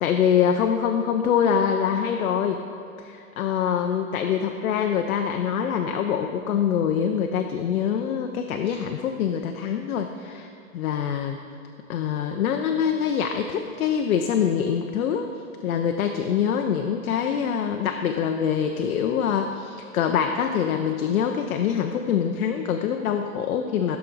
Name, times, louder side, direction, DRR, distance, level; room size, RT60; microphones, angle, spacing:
voice 1, 0.0-2.6 3.0-10.5 10.7-11.4 11.9-15.3 15.6-24.0, left 8 dB, 70° left, 5 dB, 0.5 m, -24 dB
7.6 x 6.0 x 3.9 m, 2.4 s
hypercardioid pair, 160°, 44 cm